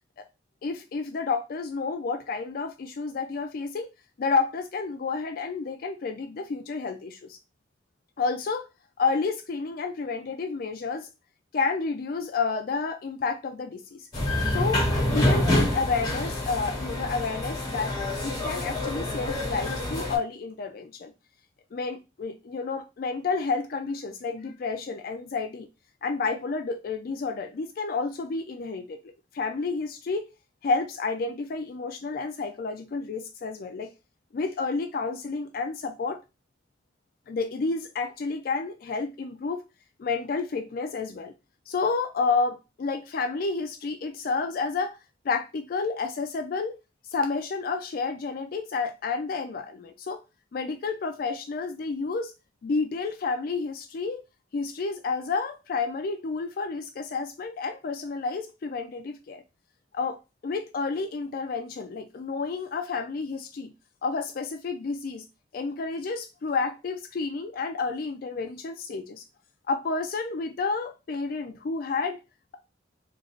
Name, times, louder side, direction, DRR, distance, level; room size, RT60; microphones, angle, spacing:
voice 1, 0.6-3.9 4.2-7.4 8.2-8.7 9.0-11.1 11.5-14.1 14.5-14.9 15.1-17.9 18.2-21.1 21.7-25.7 26.0-29.0 29.3-30.3 30.6-33.9 34.3-36.2 37.3-39.6 40.0-41.3 41.7-45.0 45.2-46.8 47.1-50.2 50.5-52.3 52.6-54.2 54.5-59.4 59.9-60.2 60.4-63.7 64.0-65.2 65.5-69.2 69.7-72.2, left 4 dB, 50° left, 0.4 m, -30 dB
sound 1, 14.1-20.2, left 1 dB, 20° left, 1.4 m, -27 dB
3.1 x 2.4 x 3.8 m
head